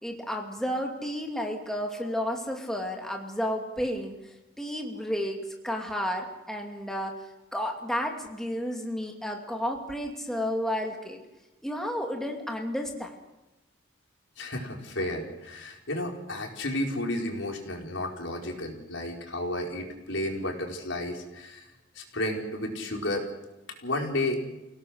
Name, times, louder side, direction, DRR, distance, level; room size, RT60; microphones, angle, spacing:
voice 1, 0.0-4.2 4.6-7.2 7.5-11.2 11.6-13.2, equal, ahead, 1 dB, 2.5 m, -32 dB
voice 2, 14.4-21.6 21.9-23.3 23.8-24.4, left 1 dB, 75° left, 1 dB, 4.6 m, -32 dB
29.0 x 17.5 x 6.5 m, 0.99 s
head